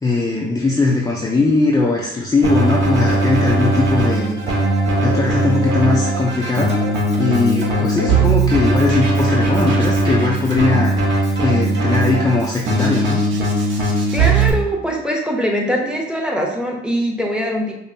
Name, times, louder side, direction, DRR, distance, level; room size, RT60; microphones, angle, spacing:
voice 1, 0.0-4.6 5.0-6.7 7.2-11.2 11.4-13.2, left 3 dB, 20° left, -3 dB, 0.5 m, -19 dB
Keyboard (musical), 2.4-14.5, right 2 dB, 70° right, 1.1 m, -18 dB
voice 2, 14.1-17.7, equal, 5° right, 0 dB, 0.8 m, -22 dB
5.1 x 2.1 x 2.7 m, 0.79 s
cardioid pair, 90°, 20 cm